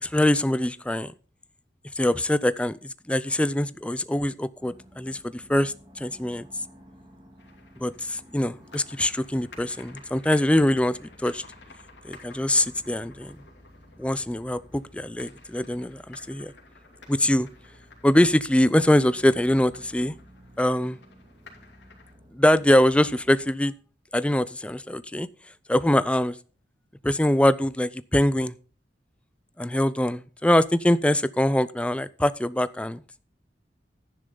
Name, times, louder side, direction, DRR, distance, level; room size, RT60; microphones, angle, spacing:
voice 1, 0.0-1.1 2.0-6.5 7.8-11.4 12.0-13.4 14.0-16.5 17.1-17.5 18.0-20.1 20.6-21.0 22.3-23.7 24.1-25.3 25.7-26.4 27.0-28.5 29.6-33.0, left 1 dB, 5° left, 16 dB, 0.4 m, -23 dB
sound 1, 4.6-23.5, equal, 25° right, 2.8 m, -53 dB
sound 2, 7.4-22.1, left 3 dB, 80° left, 2.8 m, -52 dB
11.0 x 9.9 x 3.9 m, 0.37 s
head